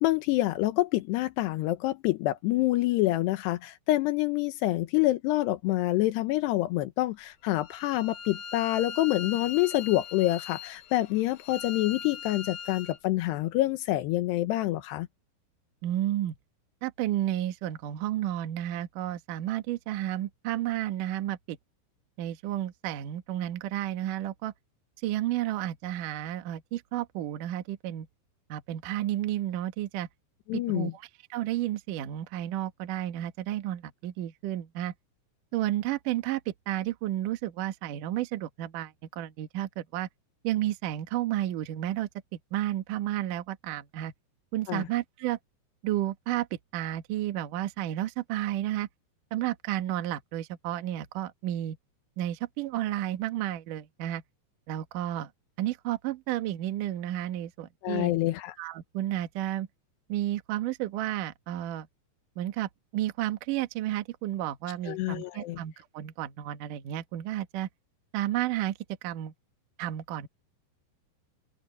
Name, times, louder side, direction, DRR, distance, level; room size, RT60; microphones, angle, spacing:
voice 1, 0.0-15.1 30.5-30.9 44.7-44.9 57.8-58.5 64.9-65.6, left 16 dB, 80° left, 2.5 m, -27 dB
Bowed string instrument, 7.6-13.0, left 7 dB, 60° left, 2.9 m, -41 dB
voice 2, 15.8-16.4 16.8-21.6 22.2-24.5 25.0-28.1 28.5-30.1 30.5-34.9 35.5-40.1 40.4-44.1 44.5-45.4 45.8-48.9 49.3-51.8 52.2-54.2 54.7-55.3 55.6-58.1 58.6-59.7 60.1-61.9 62.4-67.7 68.1-69.3 69.8-70.3, right 13 dB, 75° right, 1.9 m, -32 dB
omnidirectional pair, 5.9 m